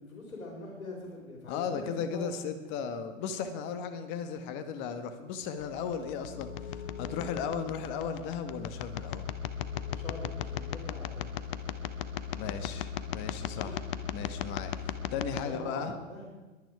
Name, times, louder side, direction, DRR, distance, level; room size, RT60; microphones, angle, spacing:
voice 1, 0.0-2.3 9.9-11.3 13.5-13.8 15.3-16.3, left 2 dB, 85° left, -2 dB, 4.4 m, -43 dB
voice 2, 1.5-9.3 12.3-13.8 14.1-15.9, left 6 dB, 25° left, 9 dB, 1.3 m, -36 dB
sound 1, 5.6-15.4, left 8 dB, 45° left, 0.9 m, -37 dB
22.0 x 9.2 x 4.8 m, 1.2 s
hypercardioid pair, 135°, 40 cm